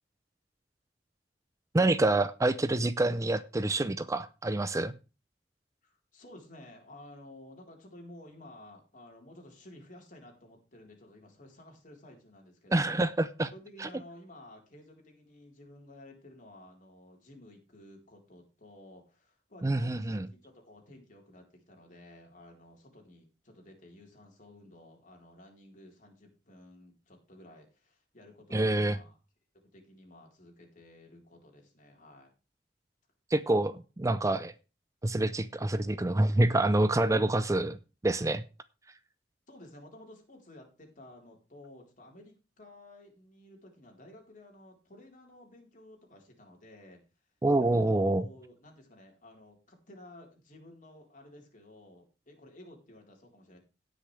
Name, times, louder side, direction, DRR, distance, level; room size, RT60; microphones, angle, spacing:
voice 1, 1.7-4.9 12.7-13.5 13.8-13.9 19.6-20.3 28.5-29.0 33.3-34.5 35.0-37.8 38.0-38.4 47.4-48.2, right 2 dB, 20° right, 0.5 m, -27 dB
voice 2, 5.8-13.0 13.5-29.2 29.5-32.3 39.5-47.0 47.6-47.8 48.1-53.6, left 1 dB, 45° left, 3.9 m, -53 dB
17.5 x 6.4 x 3.3 m
head